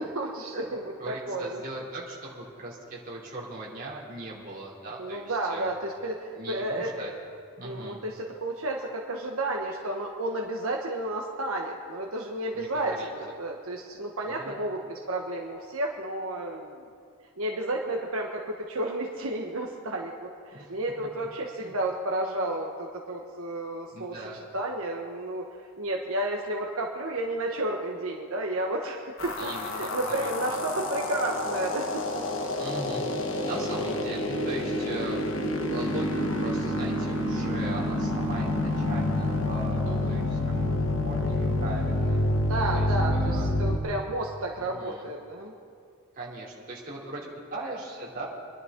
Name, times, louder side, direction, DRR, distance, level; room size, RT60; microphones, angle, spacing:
voice 1, 0.0-1.6 5.0-7.1 7.6-16.9 17.4-24.2 24.5-32.2 36.3-36.4 39.9-40.2 42.3-45.5, right 1 dB, 80° right, 0 dB, 1.2 m, -32 dB
voice 2, 1.0-5.7 6.3-7.1 7.6-8.0 12.5-13.1 14.3-14.6 20.5-20.8 21.6-21.7 23.9-24.4 29.4-30.3 32.6-33.1 33.4-35.2 35.6-40.6 41.0-42.2 42.7-42.9 43.1-43.5 44.6-45.1 46.1-48.3, right 2 dB, 40° right, -5 dB, 3.2 m, -39 dB
sound 1, 29.2-43.8, left 1 dB, 65° left, 1.3 m, -28 dB
25.5 x 11.0 x 3.8 m, 2.2 s
head